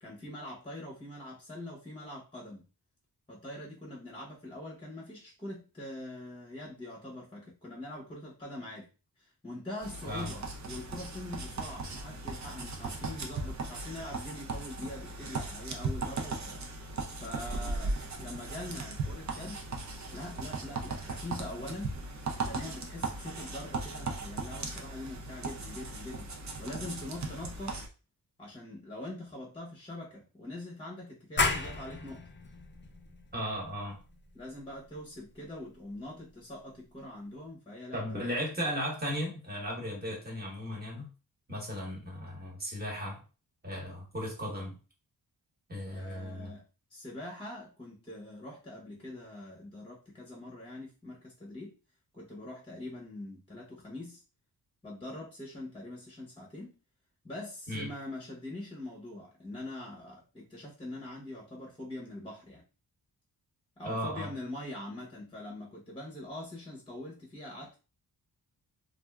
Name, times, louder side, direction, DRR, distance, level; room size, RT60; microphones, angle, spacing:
voice 1, 0.0-2.6 3.3-8.9 9.2-16.6 17.2-19.6 20.1-22.0 22.4-26.3 26.6-27.7 28.4-32.3 34.3-38.4 45.9-46.6 46.9-51.7 52.1-54.2 54.8-56.7 57.2-62.6 63.8-67.8, left 1 dB, 15° left, -2 dB, 0.8 m, -43 dB
sound 1, 9.8-27.9, right 3 dB, 45° right, 0.6 m, -38 dB
sound 2, 31.4-36.8, left 4 dB, 30° left, 0.4 m, -36 dB
voice 2, 33.3-34.0 37.9-41.1 41.5-43.2 43.6-44.8 45.7-46.5 57.7-57.9 63.8-64.3, equal, 25° right, -2 dB, 1.2 m, -36 dB
3.4 x 2.5 x 2.2 m, 0.33 s
wide cardioid pair, 105°, 41 cm